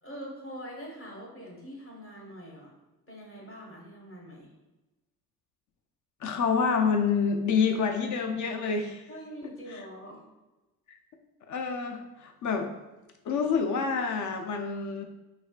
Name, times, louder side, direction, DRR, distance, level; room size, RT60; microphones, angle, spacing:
voice 1, 0.0-2.7 3.1-4.5 9.1-10.2, equal, 30° left, -3 dB, 1.4 m, -43 dB
voice 2, 6.2-9.0 11.5-12.7 13.3-15.0, left 5 dB, 45° left, 5 dB, 0.5 m, -27 dB
4.0 x 2.4 x 2.4 m, 1.1 s
hypercardioid pair, 45°, 43 cm